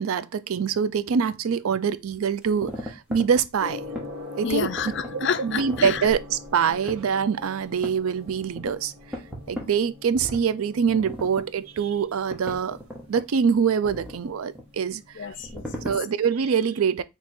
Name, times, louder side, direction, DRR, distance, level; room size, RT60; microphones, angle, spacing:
voice 1, 0.0-3.8 4.4-4.7 5.1-8.9 9.5-12.8 13.1-15.3 15.8-17.0, right 6 dB, 85° right, 0.4 m, -24 dB
sound 1, 2.1-4.1 4.5-5.3 5.6-7.1 7.7-9.7 10.1-10.5 10.9-11.5 12.0-12.1 12.3-13.3 13.8-14.6 15.3-16.0, equal, 5° right, 0.9 m, -37 dB
Gong, 3.6-15.6, left 2 dB, 50° right, 1.6 m, -43 dB
voice 2, 4.4-6.1 15.2-15.9, left 7 dB, 55° left, 0.4 m, -29 dB
3.6 x 2.9 x 4.3 m
head